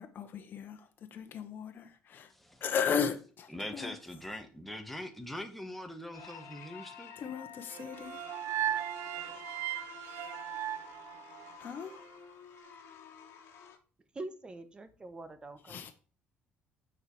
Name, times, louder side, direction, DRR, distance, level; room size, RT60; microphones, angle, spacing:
voice 1, 0.0-2.3 2.6-3.9 7.2-8.5 11.6-12.0 15.7-15.9, left 7 dB, 50° left, 1.1 m, -36 dB
voice 2, 2.3-2.6 3.5-7.1, left 1 dB, 5° left, 1.4 m, -42 dB
sound 1, 6.1-13.8, left 7 dB, 75° left, 1.4 m, -50 dB
sound 2, 7.7-11.9, right 12 dB, 80° right, 0.6 m, -37 dB
voice 3, 14.1-15.9, right 2 dB, 20° right, 1.2 m, -44 dB
6.5 x 4.8 x 4.8 m
cardioid pair, 105°, 4 cm